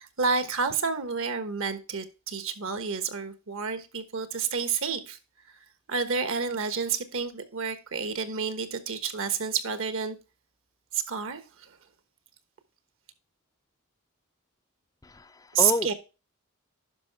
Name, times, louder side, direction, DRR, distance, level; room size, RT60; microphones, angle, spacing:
voice 1, 0.0-5.2 5.5-5.6 5.9-10.2 10.9-11.8 15.5-15.9, right 6 dB, 65° right, 1.2 m, -29 dB
voice 2, 15.0-15.9, left 3 dB, 15° left, 0.4 m, -30 dB
11.5 x 5.4 x 3.4 m
head